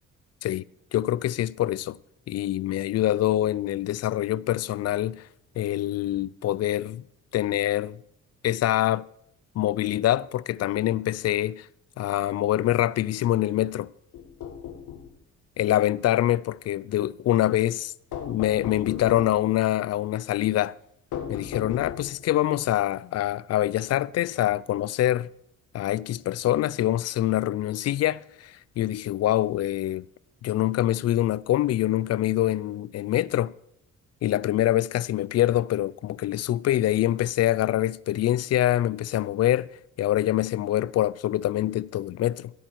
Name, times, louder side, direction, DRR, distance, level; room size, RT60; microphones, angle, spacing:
voice 1, 0.9-2.0 2.3-5.2 5.6-7.0 7.3-8.0 8.4-9.1 9.6-11.7 12.0-13.9 15.6-17.9 18.2-20.7 21.3-25.3 25.7-30.1 30.4-33.5 34.2-39.7 40.0-42.5, left 13 dB, 55° left, 0.4 m, -25 dB
sound 1, 14.1-15.1 18.1-19.4 21.1-22.3, left 8 dB, 80° left, 1.5 m, -36 dB
16.0 x 8.6 x 4.6 m
cardioid pair, 90°, 30 cm